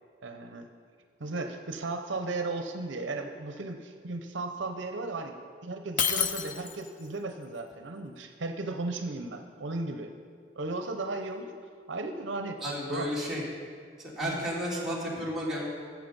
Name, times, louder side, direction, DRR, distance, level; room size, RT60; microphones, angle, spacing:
voice 1, 0.2-0.7 1.2-5.4 5.6-10.1 10.5-11.5 11.9-12.6 12.9-13.1 14.2-14.4, right 2 dB, 70° right, 6 dB, 0.7 m, -35 dB
Shatter, 6.0-7.0, left 8 dB, 45° left, 0.6 m, -29 dB
voice 2, 12.6-13.4 14.0-15.7, equal, ahead, -7 dB, 2.8 m, -32 dB
14.0 x 7.5 x 5.3 m, 2.1 s
head